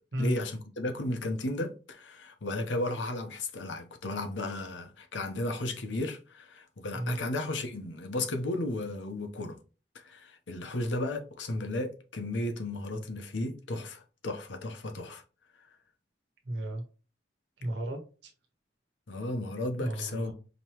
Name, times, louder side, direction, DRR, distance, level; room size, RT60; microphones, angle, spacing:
voice 1, 0.2-9.6 9.9-15.2 19.1-20.3, left 2 dB, 80° left, 0.9 m, -34 dB
voice 2, 16.4-16.8 17.6-18.3 19.8-20.3, right 1 dB, 65° right, 1.1 m, -34 dB
5.2 x 3.0 x 2.9 m
head